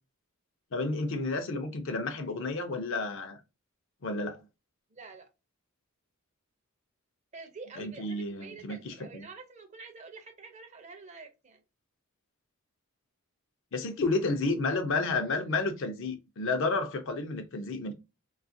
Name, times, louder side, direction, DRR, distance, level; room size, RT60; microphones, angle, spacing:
voice 1, 0.7-3.4 4.0-4.4 7.8-9.2 13.7-17.9, left 3 dB, 60° left, 0.5 m, -31 dB
voice 2, 4.9-5.3 7.3-11.6, right 4 dB, 30° right, 0.5 m, -47 dB
2.7 x 2.4 x 2.5 m
head